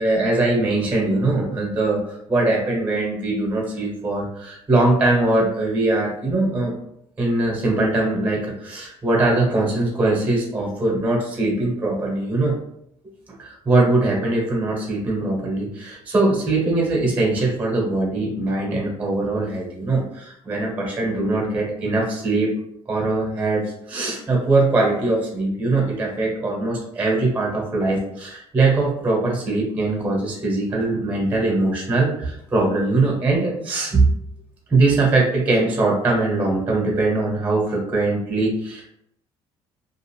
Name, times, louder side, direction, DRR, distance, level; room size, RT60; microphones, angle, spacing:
voice 1, 0.0-6.7 7.2-12.5 13.4-22.5 22.9-34.1 34.7-38.9, right 2 dB, 20° right, -2 dB, 1.2 m, -21 dB
2.6 x 2.4 x 3.1 m, 0.74 s
cardioid pair, 95°, 11 cm